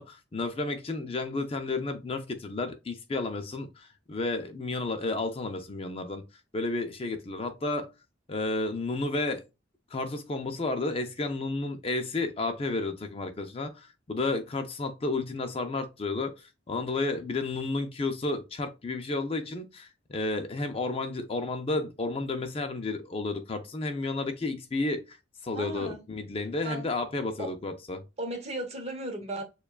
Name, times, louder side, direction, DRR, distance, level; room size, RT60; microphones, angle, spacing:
voice 1, 0.0-6.2 6.5-7.9 8.3-9.4 9.9-25.2 25.4-28.0, left 2 dB, 30° left, 0.4 m, -32 dB
voice 2, 25.5-26.0 26.6-26.8 27.4-27.5 28.2-29.4, right 1 dB, 35° right, 0.9 m, -35 dB
6.7 x 2.3 x 2.3 m
head